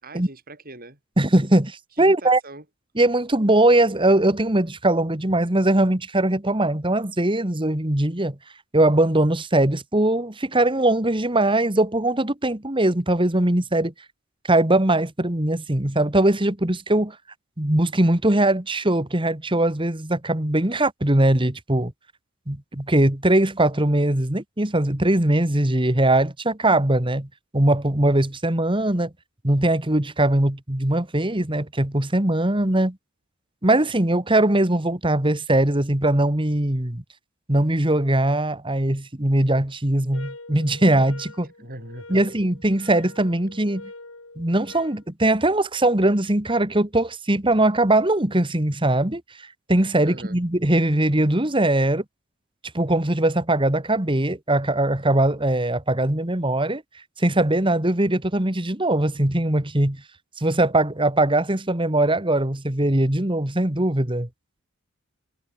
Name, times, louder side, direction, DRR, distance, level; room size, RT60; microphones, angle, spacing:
voice 1, 0.0-1.0 1.9-2.6 41.6-42.2 50.0-50.4, right 2 dB, 40° right, 6.5 m, -40 dB
voice 2, 1.2-2.4 3.0-8.4 8.7-13.9 14.5-17.2 17.6-21.9 22.5-27.3 27.5-29.1 29.4-33.0 33.6-37.0 37.5-41.5 42.1-43.9 44.4-49.2 49.7-52.0 52.7-56.8 57.2-60.0 60.4-64.3, right 1 dB, 25° right, 1.8 m, -21 dB
sound 1, 40.1-45.0, left 2 dB, 65° left, 4.7 m, -44 dB
head